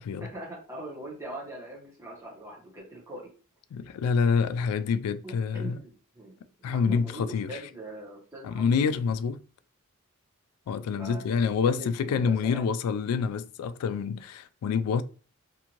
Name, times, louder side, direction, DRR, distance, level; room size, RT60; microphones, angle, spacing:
voice 1, 0.2-3.3 5.2-6.4 6.7-9.0 11.0-12.7, right 1 dB, 15° right, 0.9 m, -42 dB
voice 2, 3.7-5.8 6.6-7.6 8.4-9.4 10.7-15.0, left 6 dB, 85° left, 0.3 m, -27 dB
2.6 x 2.5 x 2.9 m
head